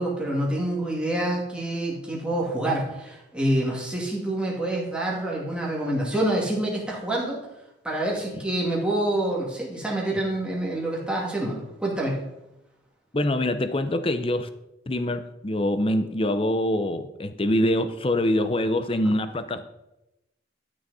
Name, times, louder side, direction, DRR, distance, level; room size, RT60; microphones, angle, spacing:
voice 1, 0.0-7.4 7.8-12.2, right 1 dB, 5° right, -3 dB, 2.4 m, -27 dB
voice 2, 13.1-14.5 14.9-19.7, left 1 dB, 30° left, 10 dB, 0.7 m, -24 dB
12.5 x 6.3 x 4.2 m, 0.91 s
head